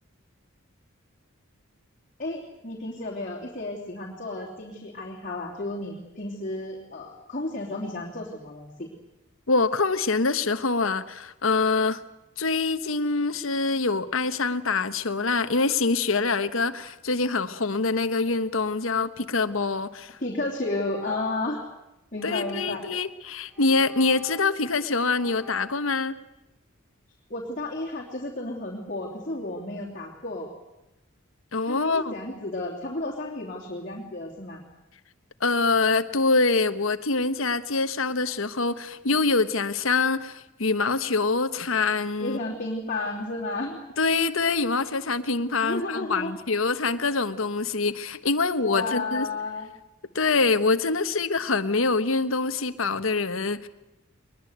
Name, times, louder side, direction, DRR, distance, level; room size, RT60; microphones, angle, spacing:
voice 1, 2.2-8.9 20.2-21.6 22.1-22.8 27.3-30.5 31.7-34.6 42.2-43.8 45.6-46.3 48.6-49.7, left 2 dB, 40° left, -3 dB, 3.1 m, -32 dB
voice 2, 9.5-12.0 12.4-20.2 22.2-26.2 31.5-32.2 35.4-42.4 44.0-49.3 50.1-53.7, left 3 dB, 75° left, 11 dB, 1.2 m, -25 dB
sound 1, 19.7-19.9 20.5-21.6 22.2-22.9 23.5-24.8 25.2-25.7, left 2 dB, ahead, 3.6 m, -45 dB
22.5 x 20.5 x 8.1 m, 0.94 s
head